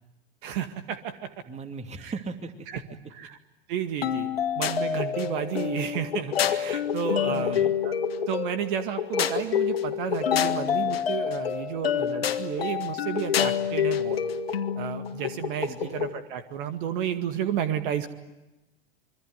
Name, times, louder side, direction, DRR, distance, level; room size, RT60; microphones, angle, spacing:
voice 1, 0.4-1.3 2.0-2.1 2.7-2.8 3.1-3.4 3.7-4.3 4.6-7.9 8.3-14.2 14.8-18.1, right 9 dB, 55° right, 9 dB, 2.0 m, -32 dB
voice 2, 1.5-2.8 7.3-7.8 15.6-16.0, right 4 dB, 20° right, 8 dB, 2.6 m, -38 dB
sound 1, 4.0-16.2, left 8 dB, 75° left, 1.8 m, -27 dB
26.0 x 23.5 x 9.5 m, 0.98 s
figure-of-eight pair, 90°, 30 cm